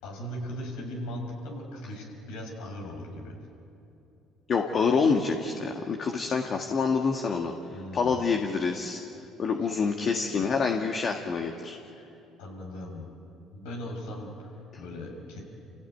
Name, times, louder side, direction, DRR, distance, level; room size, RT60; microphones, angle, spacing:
voice 1, 0.0-3.3 7.7-8.2 10.4-10.5 11.9-12.1 12.4-13.1 13.5-15.4, left 1 dB, 85° left, 0 dB, 6.3 m, -38 dB
voice 2, 4.5-7.5 7.9-9.0 9.4-11.8, left 5 dB, 50° left, 2 dB, 1.9 m, -27 dB
28.0 x 16.5 x 9.5 m, 2.8 s
supercardioid pair, 75°, 0 cm